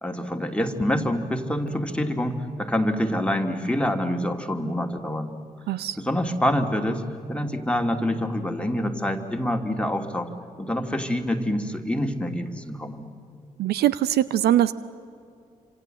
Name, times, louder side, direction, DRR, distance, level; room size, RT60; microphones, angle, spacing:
voice 1, 0.0-5.3 6.0-10.3 10.6-13.1, left 1 dB, 5° left, 4 dB, 2.6 m, -26 dB
voice 2, 5.7-6.0 13.6-14.7, right 12 dB, 60° right, 17 dB, 0.6 m, -22 dB
27.0 x 26.5 x 7.7 m, 2.4 s
figure-of-eight pair, 40°, 18 cm